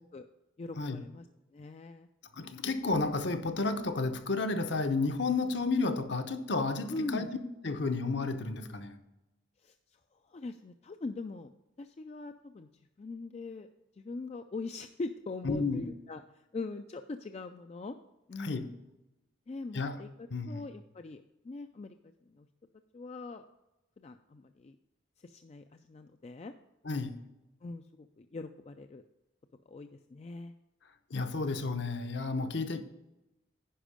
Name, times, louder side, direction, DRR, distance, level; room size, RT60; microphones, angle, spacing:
voice 1, 0.6-1.3 1.5-2.1 6.9-7.3 9.6-9.7 10.3-11.5 11.8-12.7 13.0-13.7 14.0-16.2 16.5-18.0 18.3-18.7 19.5-22.0 22.3-22.5 22.9-23.4 24.0-24.8 25.2-26.5 27.6-29.0 29.7-30.5, left 3 dB, 30° left, 0.3 m, -42 dB
voice 2, 2.3-7.3 7.6-9.0 15.4-15.9 18.4-18.6 19.7-20.0 20.3-20.7 26.8-27.1 31.1-32.8, left 3 dB, 60° left, 0.8 m, -32 dB
10.0 x 5.2 x 5.0 m
head